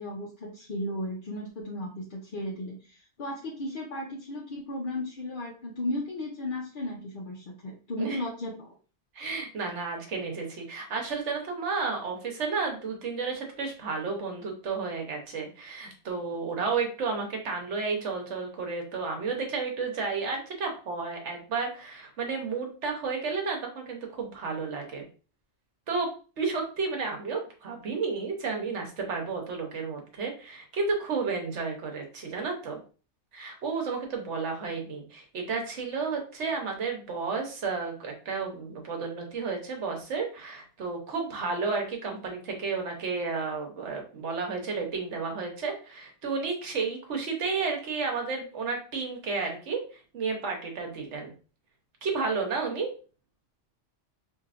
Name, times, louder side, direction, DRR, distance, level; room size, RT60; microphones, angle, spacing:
voice 1, 0.0-8.7, left 1 dB, 50° left, -4 dB, 0.8 m, -35 dB
voice 2, 9.1-25.0 25.9-26.1 26.4-32.8 33.3-49.8 50.1-51.3 52.0-52.9, right 4 dB, 70° right, 2 dB, 1.2 m, -32 dB
4.5 x 2.7 x 2.5 m, 0.37 s
omnidirectional pair, 1.3 m